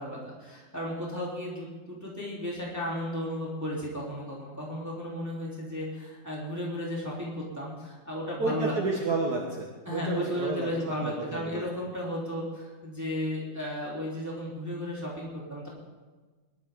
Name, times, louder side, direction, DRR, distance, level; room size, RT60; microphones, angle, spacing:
voice 1, 0.0-8.7 9.9-15.7, equal, 10° right, -5 dB, 3.6 m, -34 dB
voice 2, 8.4-10.7 11.0-11.7, right 3 dB, 55° right, -1 dB, 2.0 m, -31 dB
21.5 x 13.0 x 3.8 m, 1.3 s
omnidirectional pair, 2.1 m